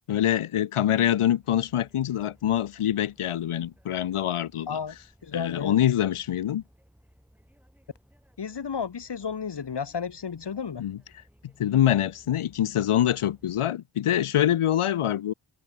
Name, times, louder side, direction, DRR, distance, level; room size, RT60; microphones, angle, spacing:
voice 1, 0.1-4.8 5.3-6.6 10.8-11.0 11.6-15.3, left 11 dB, 85° left, 0.7 m, -25 dB
sound 1, 1.1-13.6, equal, 5° right, 6.7 m, -60 dB
voice 2, 5.2-5.7 8.4-10.8, left 6 dB, 55° left, 1.2 m, -32 dB
cardioid pair, 50°, 50 cm